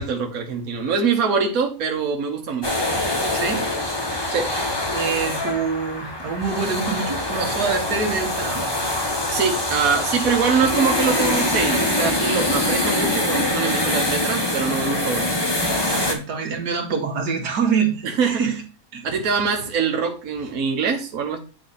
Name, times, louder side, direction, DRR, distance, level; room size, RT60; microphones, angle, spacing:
voice 1, 0.0-2.7 4.3-4.5 9.3-15.3 18.0-18.4 19.0-21.4, right 6 dB, 65° right, 1.5 m, -23 dB
sound 1, 2.6-16.1, left 1 dB, 15° left, 1.2 m, -24 dB
voice 2, 3.3-3.7 4.9-8.7 15.9-18.5 18.9-19.0, right 5 dB, 90° right, 2.0 m, -25 dB
8.8 x 4.2 x 4.1 m
omnidirectional pair, 1.7 m